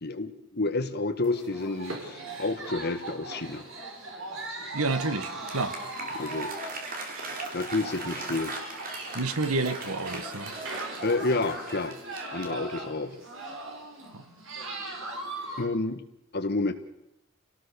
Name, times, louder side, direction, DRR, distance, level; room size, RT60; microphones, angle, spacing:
voice 1, 0.0-3.7 6.1-6.5 7.5-8.5 11.0-12.0 12.3-13.2 15.6-16.0 16.3-16.7, left 2 dB, 50° left, 9 dB, 1.6 m, -29 dB
sound 1, 1.2-15.6, right 2 dB, 65° right, 5.1 m, -39 dB
voice 2, 4.7-5.7 9.1-10.5 14.1-14.2, right 3 dB, 90° right, 11 dB, 1.6 m, -29 dB
Applause, 4.9-13.1, right 3 dB, 40° right, 3.7 m, -40 dB
28.0 x 18.0 x 7.0 m, 0.87 s
head